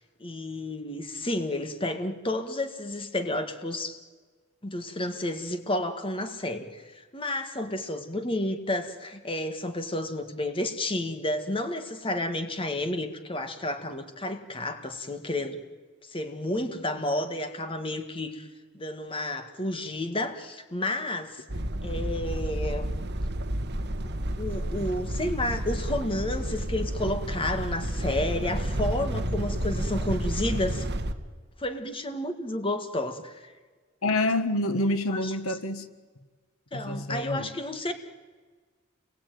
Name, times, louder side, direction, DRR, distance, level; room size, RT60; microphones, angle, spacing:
voice 1, 0.2-4.0 4.6-15.6 16.1-18.5 18.7-21.4 21.8-22.9 24.4-30.9 31.6-33.5 36.7-37.9, left 1 dB, 25° left, 8 dB, 1.7 m, -31 dB
sound 1, 21.5-31.1, right 1 dB, 50° right, 1.6 m, -30 dB
voice 2, 34.0-35.9 36.7-37.5, left 1 dB, 80° left, 10 dB, 1.6 m, -27 dB
29.0 x 22.0 x 9.4 m, 1.4 s
head